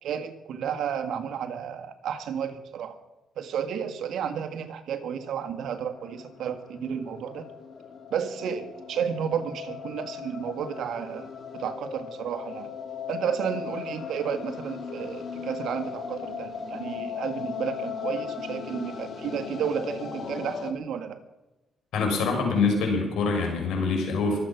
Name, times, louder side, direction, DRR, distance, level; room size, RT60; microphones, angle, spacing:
voice 1, 0.0-3.0 3.4-7.5 8.1-11.3 11.5-12.7 13.1-21.2, right 8 dB, 75° right, 8 dB, 1.8 m, -32 dB
sound 1, 5.2-20.7, left 6 dB, 50° left, 1.7 m, -38 dB
voice 2, 21.9-24.4, left 4 dB, 80° left, 2 dB, 5.7 m, -25 dB
24.0 x 8.3 x 5.9 m, 1.0 s
cardioid pair, 90°, 0 cm